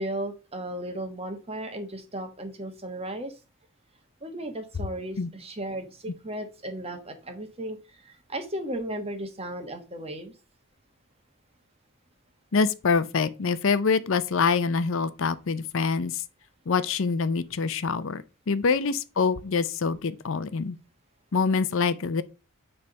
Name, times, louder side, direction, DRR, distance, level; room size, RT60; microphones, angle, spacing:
voice 1, 0.0-3.3 4.2-10.3, right 1 dB, 25° right, 1.3 m, -35 dB
voice 2, 12.5-16.2 16.7-20.8 21.3-22.2, left 5 dB, 60° left, 0.5 m, -25 dB
9.5 x 3.5 x 5.2 m
head